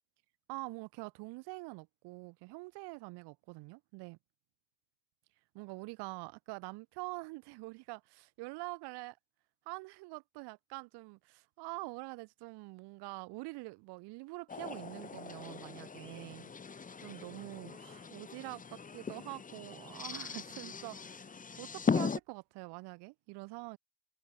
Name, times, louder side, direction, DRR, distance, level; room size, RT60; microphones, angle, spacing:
voice 1, 0.5-4.2 5.5-9.2 9.6-16.5 17.0-21.3 21.6-23.8, right 25 dB, 75° right, 1.5 m, -45 dB
sound 1, 14.5-22.2, left 5 dB, 20° left, 1.0 m, -39 dB
supercardioid pair, 80°, 40 cm